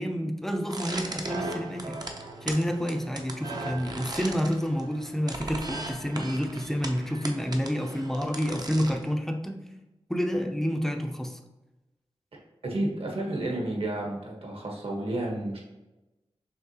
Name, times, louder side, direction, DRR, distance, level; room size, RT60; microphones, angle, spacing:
voice 1, 0.0-2.0 2.4-9.6 10.1-11.4, equal, 5° left, 4 dB, 0.5 m, -29 dB
sound 1, 0.7-9.1, right 2 dB, 40° right, 0.6 m, -38 dB
voice 2, 12.6-15.6, right 1 dB, 65° right, -2 dB, 1.3 m, -31 dB
5.9 x 3.2 x 2.9 m, 1.0 s
wide cardioid pair, 90°, 11 cm